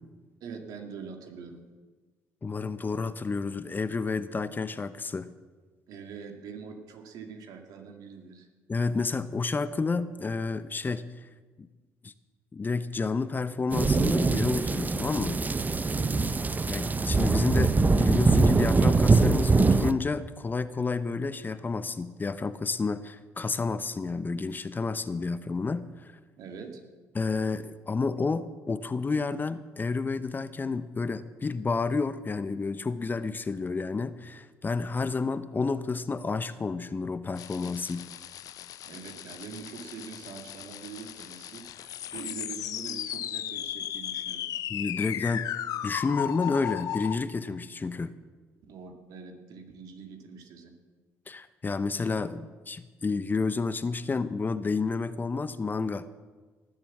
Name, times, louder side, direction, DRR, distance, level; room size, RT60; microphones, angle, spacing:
voice 1, 0.4-1.6 5.9-8.5 15.9-16.3 26.4-26.8 38.8-44.5 48.7-50.7, right 6 dB, 65° right, 4 dB, 2.2 m, -43 dB
voice 2, 2.4-5.3 8.7-11.0 11.6-11.7 12.0-12.1 12.5-15.4 16.7-26.1 27.1-38.1 44.7-45.4 45.8-48.1 51.3-56.1, left 4 dB, 30° left, 13 dB, 0.8 m, -30 dB
sound 1, 13.7-19.9, right 3 dB, 25° right, 0.7 m, -23 dB
sound 2, 37.4-47.2, left 11 dB, 65° left, 0.7 m, -36 dB
19.0 x 7.8 x 7.3 m, 1.4 s
hypercardioid pair, 60°, 7 cm